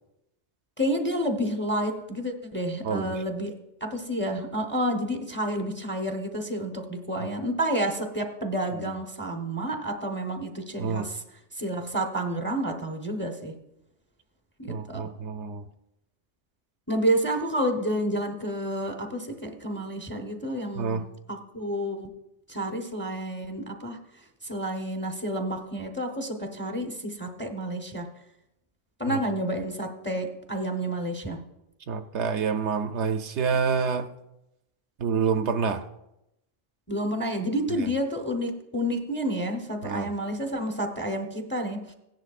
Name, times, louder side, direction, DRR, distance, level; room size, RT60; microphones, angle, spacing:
voice 1, 0.8-11.2 11.6-13.5 14.6-15.1 16.9-22.1 22.5-24.0 24.4-28.1 29.0-31.4 36.9-41.9, right 1 dB, 10° left, 4 dB, 0.8 m, -30 dB
voice 2, 2.8-3.2 8.7-9.0 10.8-11.1 14.7-15.6 20.7-21.0 29.1-29.2 31.9-34.1 35.0-35.8 37.8-37.9 39.8-40.1, right 6 dB, 70° right, 7 dB, 0.9 m, -28 dB
16.5 x 10.5 x 2.4 m, 0.87 s
omnidirectional pair, 1.3 m